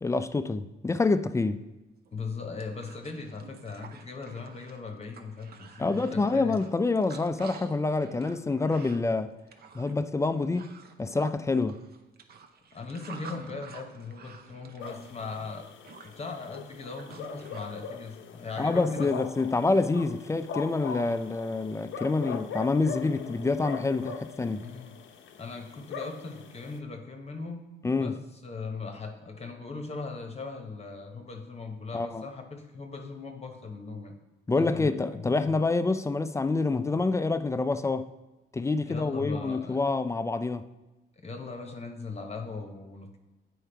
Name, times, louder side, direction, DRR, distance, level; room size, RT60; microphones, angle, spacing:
voice 1, 0.0-1.6 5.8-9.3 9.7-10.7 11.0-11.8 18.6-24.7 27.8-28.2 31.9-32.2 34.5-38.1 38.5-40.6, left 3 dB, 15° left, 0.3 m, -27 dB
voice 2, 2.1-6.7 12.7-15.7 16.0-19.1 24.6-24.9 25.4-27.7 28.0-28.2 28.4-34.1 34.5-35.6 38.9-39.8 41.2-43.2, left 4 dB, 30° left, 0.9 m, -39 dB
sound 1, 2.1-2.2 2.4-17.7, right 5 dB, 50° right, 0.7 m, -50 dB
sound 2, 14.8-26.8, left 6 dB, 75° left, 0.6 m, -41 dB
8.3 x 4.6 x 3.4 m
cardioid pair, 90°, 20 cm